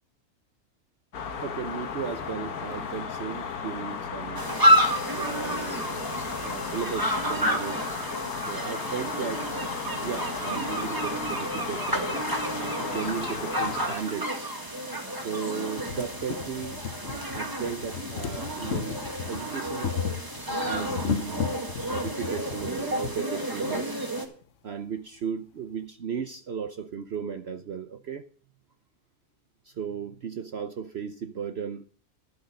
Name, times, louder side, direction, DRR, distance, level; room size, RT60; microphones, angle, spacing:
sound 1, 1.1-14.0, left 6 dB, 80° left, 1.5 m, -35 dB
voice 1, 1.4-4.4 5.1-6.0 6.4-7.8 8.4-9.5 10.0-14.8 15.1-19.9 20.5-21.6 21.9-24.1 24.6-28.3 29.6-31.9, right 6 dB, 55° right, 0.8 m, -35 dB
sound 2, 4.4-24.3, equal, 15° right, 1.7 m, -30 dB
sound 3, 13.6-13.7 14.7-14.8 15.2-15.3 15.6-23.2 24.1-24.2 24.4-24.5, left 9 dB, 60° left, 1.0 m, -35 dB
11.5 x 8.1 x 5.3 m
omnidirectional pair, 1.6 m